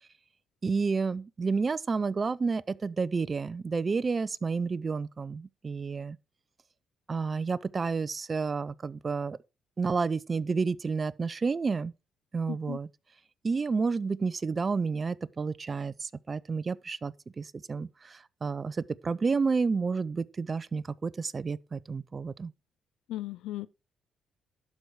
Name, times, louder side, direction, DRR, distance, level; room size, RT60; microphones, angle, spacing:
voice 1, 0.6-6.2 7.1-9.4 9.8-11.9 12.3-12.9 13.4-22.5, right 4 dB, 35° right, 0.5 m, -30 dB
voice 2, 12.5-12.8 23.1-23.7, left 14 dB, 85° left, 0.4 m, -36 dB
11.5 x 4.7 x 6.3 m
cardioid pair, 90°, 0 cm